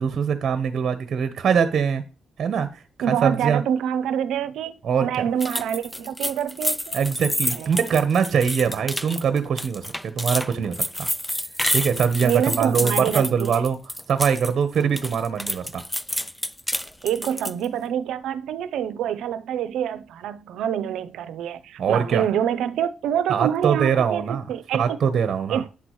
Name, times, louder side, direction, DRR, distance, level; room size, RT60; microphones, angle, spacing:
voice 1, 0.0-2.0 2.4-2.7 3.1-3.6 4.8-5.3 6.9-11.1 11.7-13.8 14.1-15.8 21.8-22.2 23.3-24.5 24.7-25.6, right 7 dB, 55° right, 1.0 m, -22 dB
voice 2, 3.0-4.7 5.0-6.9 7.5-7.8 8.7-8.8 12.2-13.6 17.0-24.8 25.5-25.7, right 9 dB, 80° right, 0.6 m, -26 dB
sound 1, 5.4-14.5 14.8-17.7, equal, 5° left, 0.3 m, -29 dB
8.9 x 6.1 x 3.1 m
cardioid pair, 90°, 0 cm